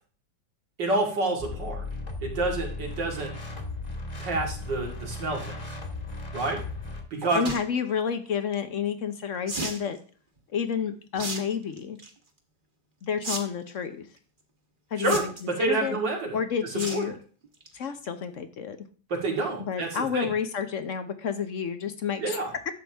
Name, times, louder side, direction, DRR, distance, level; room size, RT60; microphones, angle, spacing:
voice 1, 0.8-1.8 2.2-3.3 4.2-5.6 6.3-6.6 7.1-7.4 15.0-15.2 15.6-16.4 16.9-17.1 19.1-19.9 20.1-20.3 22.2-22.5, right 2 dB, 90° right, 0 dB, 2.9 m, -28 dB
sound 1, 1.4-7.0, left 3 dB, 25° left, 1.5 m, -36 dB
sound 2, 7.2-7.6 9.5-9.8 11.1-11.4 11.8-12.1 13.2-13.4 13.7-13.8 15.0-15.5 16.8-17.0 17.4-17.7 18.0-18.1 18.3-18.4, right 2 dB, 30° right, 1.4 m, -33 dB
voice 2, 7.3-10.0 10.5-12.0 13.0-14.1 14.9-15.3 15.6-16.0 16.3-17.2 17.7-18.8 19.6-22.4, left 7 dB, 55° left, 9 dB, 1.0 m, -30 dB
11.5 x 7.6 x 3.4 m, 0.41 s
omnidirectional pair, 1.9 m